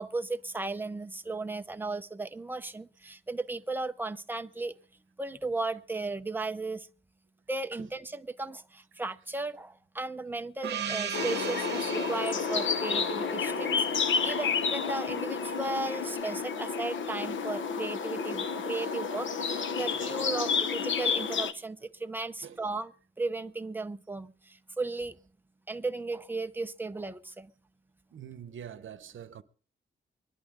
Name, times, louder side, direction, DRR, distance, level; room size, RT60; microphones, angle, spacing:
voice 1, 0.0-4.8 5.2-6.9 7.5-22.9 23.2-25.2 25.7-27.5, right 3 dB, 10° right, 0.6 m, -35 dB
Gong, 10.6-15.0, right 7 dB, 60° right, 1.2 m, -38 dB
sound 1, 11.1-21.5, left 6 dB, 75° left, 0.9 m, -30 dB
voice 2, 19.8-20.6 22.4-22.6 28.1-29.4, right 9 dB, 80° right, 0.9 m, -46 dB
25.0 x 11.0 x 3.7 m
wide cardioid pair, 135°, 20 cm